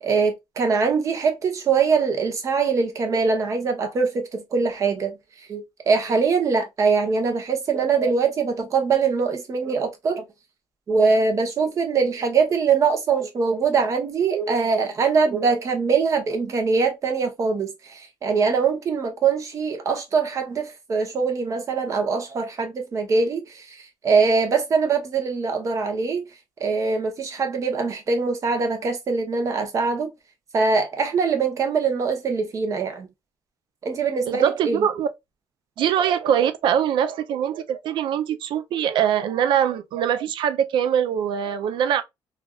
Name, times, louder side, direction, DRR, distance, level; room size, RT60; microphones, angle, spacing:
voice 1, 0.0-5.1 5.5-10.2 10.9-26.2 26.6-30.1 30.5-33.1 33.8-34.8 35.8-35.9, right 5 dB, 40° right, 0.8 m, -23 dB
voice 2, 34.3-35.1 35.8-42.0, right 9 dB, 70° right, 0.4 m, -23 dB
3.3 x 2.4 x 2.3 m
cardioid pair, 150°, 9 cm